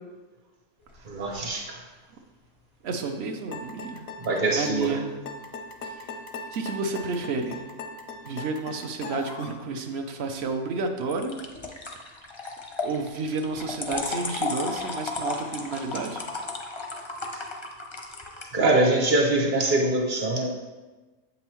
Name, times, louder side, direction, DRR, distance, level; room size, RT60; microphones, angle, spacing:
sound 1, 0.8-1.5 11.1-18.5, left 3 dB, 35° left, 0.4 m, -34 dB
voice 1, 1.0-1.8 4.2-5.0 18.5-20.5, right 2 dB, 40° right, 0 dB, 1.0 m, -23 dB
voice 2, 2.8-4.1 4.6-5.1 5.8-5.9 6.5-7.6 8.2-11.4 12.8-16.3, right 3 dB, 60° right, 5 dB, 0.8 m, -31 dB
sound 2, 3.5-9.6, left 3 dB, 85° left, 1.1 m, -39 dB
7.7 x 5.5 x 3.0 m, 1.3 s
omnidirectional pair, 1.4 m